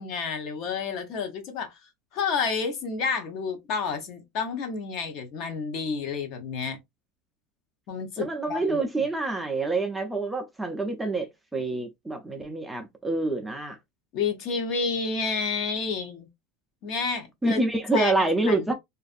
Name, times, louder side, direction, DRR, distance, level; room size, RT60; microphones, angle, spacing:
voice 1, 0.0-1.8 2.1-6.8 7.9-8.8 14.1-16.3 16.8-17.6 17.9-18.7, left 5 dB, 50° left, 0.8 m, -30 dB
voice 2, 8.2-13.8 17.4-18.7, right 2 dB, 5° right, 0.4 m, -27 dB
2.4 x 2.4 x 2.4 m
supercardioid pair, 140°, 0 cm